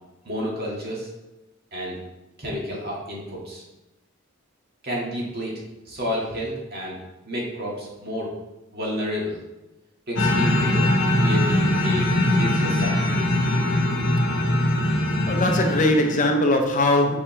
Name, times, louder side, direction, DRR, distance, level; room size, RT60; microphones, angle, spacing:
voice 1, 0.2-1.1 1.7-2.0 2.4-3.6 4.8-5.5 5.9-7.0 7.3-8.3 8.7-9.4 10.1-13.1, equal, 50° right, -3 dB, 1.8 m, -30 dB
sound 1, 10.2-16.4, left 1 dB, 60° left, 1.3 m, -21 dB
voice 2, 15.3-17.2, left 1 dB, 35° left, 4 dB, 0.6 m, -20 dB
7.3 x 4.8 x 3.2 m, 1.0 s
head